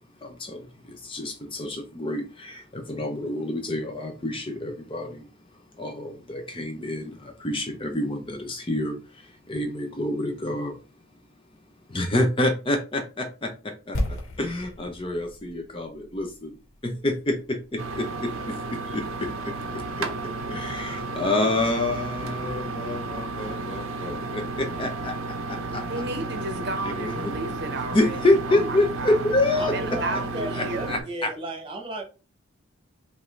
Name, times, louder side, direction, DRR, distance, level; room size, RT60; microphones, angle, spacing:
voice 1, 0.2-5.3 5.8-10.8 11.9-16.5 16.8-20.1 20.5-25.8 26.8-27.3 27.9-29.7 30.5-31.3, left 2 dB, 25° left, 0.6 m, -28 dB
sound 1, 13.9-17.9 18.1-18.3, left 1 dB, 85° left, 1.3 m, -34 dB
sound 2, 17.8-31.0, right 3 dB, 90° right, 0.7 m, -33 dB
voice 2, 25.9-29.3 29.7-31.1, right 2 dB, 55° right, 0.8 m, -33 dB
voice 3, 29.5-32.0, right 1 dB, 25° right, 1.0 m, -34 dB
5.2 x 2.6 x 3.1 m
head